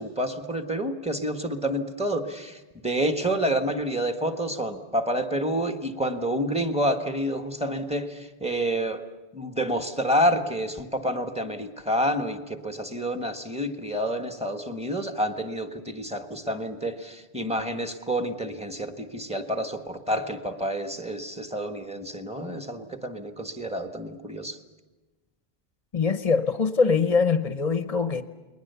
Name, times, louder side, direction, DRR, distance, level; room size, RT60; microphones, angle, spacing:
voice 1, 0.0-9.0 9.3-24.6, equal, 5° right, 1.4 m, -28 dB
voice 2, 25.9-28.2, left 5 dB, 40° left, 0.9 m, -23 dB
29.5 x 21.0 x 6.9 m
omnidirectional pair, 1.1 m